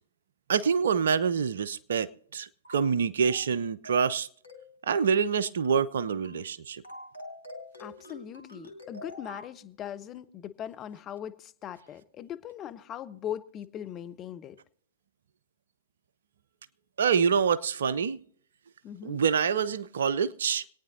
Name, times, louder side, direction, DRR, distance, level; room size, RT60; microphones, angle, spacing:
voice 1, 0.5-4.3 4.9-6.8 17.0-18.2 19.0-20.6, right 6 dB, 60° right, 0.5 m, -26 dB
sound 1, 2.6-2.9 3.2-3.5 3.8-4.1 4.4-4.7 5.0-5.3 5.6-5.9 6.2-6.5 6.8-9.5, left 1 dB, 75° left, 1.4 m, -45 dB
voice 2, 7.8-14.6 18.8-19.2, left 10 dB, 25° left, 0.7 m, -40 dB
26.0 x 9.3 x 2.7 m
figure-of-eight pair, 105°, 0 cm